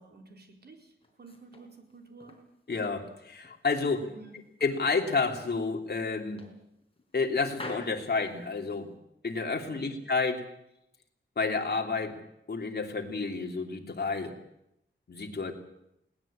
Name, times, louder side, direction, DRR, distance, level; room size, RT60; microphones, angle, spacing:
voice 1, 0.0-2.4 4.1-4.4 9.7-10.0, right 3 dB, 55° right, 3 dB, 4.4 m, -51 dB
sound 1, 1.0-2.5 2.8-4.2 4.6-5.4 5.8-5.9 6.4-7.2 7.5-8.9, left 2 dB, 30° left, 4.9 m, -47 dB
voice 2, 2.7-4.1 4.6-6.4 7.1-8.9 9.2-10.4 11.4-12.2 12.5-14.3 15.1-15.5, left 4 dB, 55° left, 3 dB, 3.0 m, -30 dB
21.0 x 18.5 x 8.7 m, 0.81 s
wide cardioid pair, 120°, 20 cm